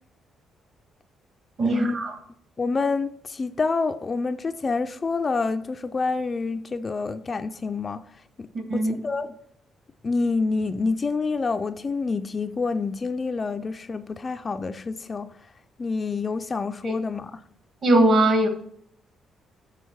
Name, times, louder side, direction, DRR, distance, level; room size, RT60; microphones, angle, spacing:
voice 1, 1.6-2.2 8.7-9.0 16.8-16.9 17.8-18.5, right 1 dB, 45° right, 1.6 m, -20 dB
voice 2, 2.6-8.0 8.4-9.3 10.0-15.3 15.8-17.4, left 4 dB, 25° left, 0.3 m, -27 dB
7.3 x 6.3 x 4.5 m
cardioid pair, 150°, 0 cm